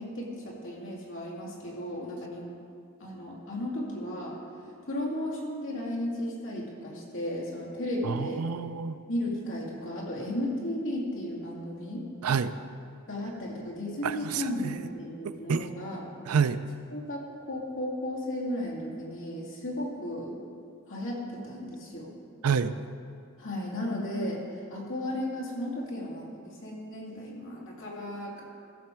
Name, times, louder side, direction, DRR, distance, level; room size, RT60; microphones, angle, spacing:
voice 1, 0.0-2.5 3.0-4.4 4.9-8.4 9.1-12.0 13.1-16.1 16.9-20.3 20.9-22.1 23.4-28.4, left 1 dB, 60° left, -4 dB, 2.5 m, -34 dB
voice 2, 8.0-9.0 12.2-12.5 14.0-14.7 15.2-15.7 16.3-16.6 22.4-22.8, right 6 dB, 80° right, 12 dB, 0.5 m, -28 dB
15.0 x 6.6 x 4.5 m, 2.4 s
head